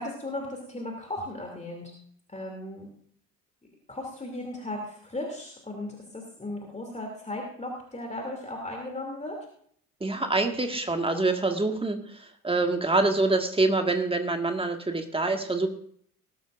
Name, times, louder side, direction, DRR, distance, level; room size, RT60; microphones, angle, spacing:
voice 1, 0.0-1.9 2.3-2.9 3.9-9.4, left 1 dB, 15° left, 1 dB, 2.8 m, -36 dB
voice 2, 10.0-15.7, right 2 dB, 10° right, 5 dB, 1.8 m, -26 dB
19.5 x 12.5 x 2.6 m, 0.62 s
figure-of-eight pair, 55°, 46 cm